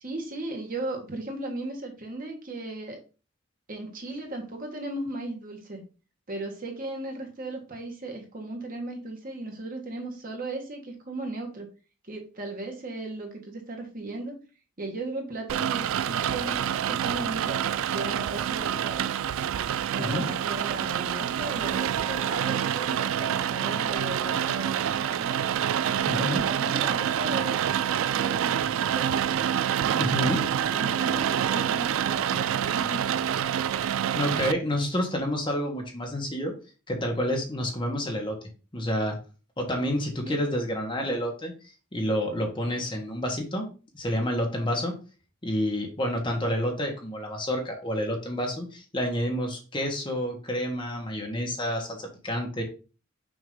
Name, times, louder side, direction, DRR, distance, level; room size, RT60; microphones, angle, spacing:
voice 1, 0.0-3.0 3.7-5.8 6.3-11.7 12.1-14.4 14.8-17.6 17.9-19.1 19.9-25.4 25.8-27.8 28.1-29.3 29.7-30.1 30.7-33.4 40.2-40.4, right 2 dB, 40° right, 2 dB, 1.4 m, -36 dB
Rain, 15.5-34.5, right 9 dB, 70° right, 0.3 m, -27 dB
voice 2, 20.0-20.3 26.1-26.4 30.0-30.5 34.1-36.5 36.9-38.4 38.7-39.2 39.6-41.5 41.9-43.7 43.9-44.9 45.4-52.6, equal, 25° left, 1 dB, 1.3 m, -29 dB
6.2 x 2.9 x 5.3 m, 0.34 s
head